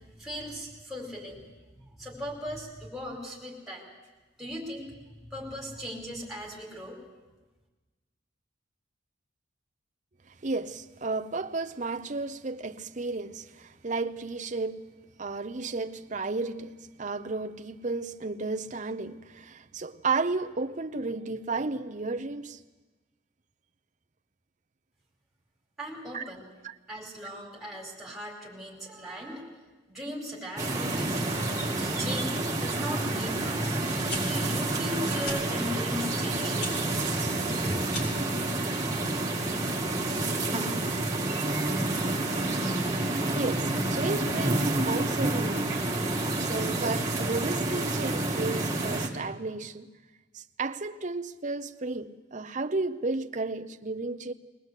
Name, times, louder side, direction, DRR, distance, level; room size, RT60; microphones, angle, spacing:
voice 1, 0.2-1.4 1.8-3.8 4.4-4.9 5.2-7.0 25.8-26.4 26.9-29.5 29.9-31.4 31.8-33.9 34.2-36.8, equal, ahead, 4.7 m, -38 dB
voice 2, 10.3-14.8 15.2-22.6 26.1-26.3 26.6-26.7 43.3-45.7 46.0-49.9 50.3-54.3, right 3 dB, 40° right, 0.8 m, -33 dB
sound 1, 30.6-49.1, right 2 dB, 15° right, 2.3 m, -29 dB
sound 2, 34.1-34.2 35.2-35.4 36.5-36.7 37.8-38.2, left 2 dB, 55° left, 5.2 m, -36 dB
21.5 x 19.5 x 8.3 m
head